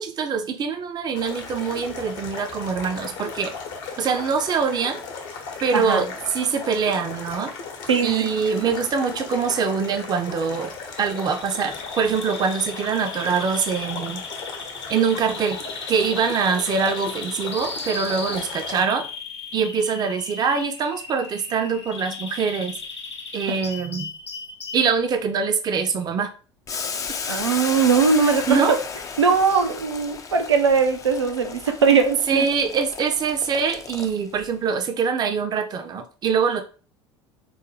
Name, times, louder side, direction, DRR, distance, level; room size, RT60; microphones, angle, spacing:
voice 1, 0.0-3.5 4.0-5.0 5.6-7.5 8.0-14.2 14.9-15.6 15.9-19.1 19.5-22.7 23.3-24.1 24.7-26.3 28.5-28.8 32.3-36.6, right 6 dB, 30° right, 7 dB, 0.5 m, -24 dB
sound 1, 1.1-18.8, left 4 dB, 60° left, 0.9 m, -36 dB
voice 2, 5.7-6.0 7.9-8.3 23.5-23.6 27.3-28.5 29.2-32.5, right 5 dB, 85° right, 5 dB, 0.5 m, -20 dB
Bird vocalization bird call bird song, 10.9-24.9, left 4 dB, 85° left, 0.6 m, -36 dB
Boiling, 26.7-34.5, left 6 dB, 25° left, 0.4 m, -34 dB
3.8 x 2.1 x 3.1 m, 0.37 s
figure-of-eight pair, 70°, 14 cm